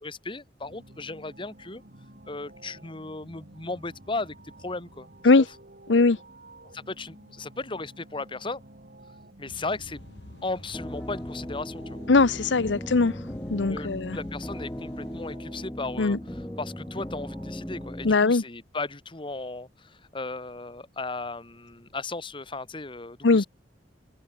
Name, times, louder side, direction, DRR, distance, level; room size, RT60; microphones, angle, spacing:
voice 1, 0.0-1.8 2.3-4.3 4.6-5.1 5.4-5.5 6.7-8.6 9.4-10.0 10.4-12.0 13.7-13.9 14.1-16.2 16.6-23.5, left 3 dB, 30° left, 1.5 m, -36 dB
sound 1, 0.6-17.9, right 1 dB, 55° right, 4.3 m, -51 dB
sound 2, 9.5-15.4, left 1 dB, 65° left, 1.7 m, -47 dB
sound 3, 10.7-18.1, equal, 10° left, 0.8 m, -37 dB
voice 2, 12.1-13.2 13.5-14.2 16.0-16.2 18.0-18.4 23.2-23.5, left 3 dB, 80° left, 0.8 m, -20 dB
head